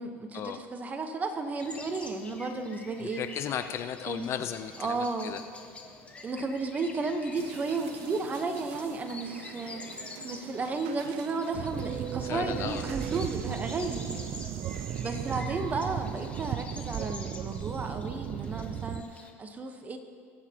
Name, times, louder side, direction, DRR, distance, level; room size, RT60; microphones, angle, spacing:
voice 1, 0.0-3.3 4.1-4.2 4.8-5.3 6.2-14.1 15.0-20.0, right 3 dB, 25° right, 6 dB, 1.1 m, -33 dB
Morning-Birds, 1.6-19.3, left 3 dB, 20° left, 1.4 m, -48 dB
voice 2, 3.0-5.4 12.2-12.8, left 9 dB, 50° left, 9 dB, 0.6 m, -35 dB
sound 1, 7.3-16.5, right 8 dB, 85° right, 0.7 m, -48 dB
sound 2, 11.5-19.0, right 10 dB, 45° right, 0.5 m, -35 dB
21.5 x 8.4 x 3.0 m, 2.2 s
supercardioid pair, 105°, 6 cm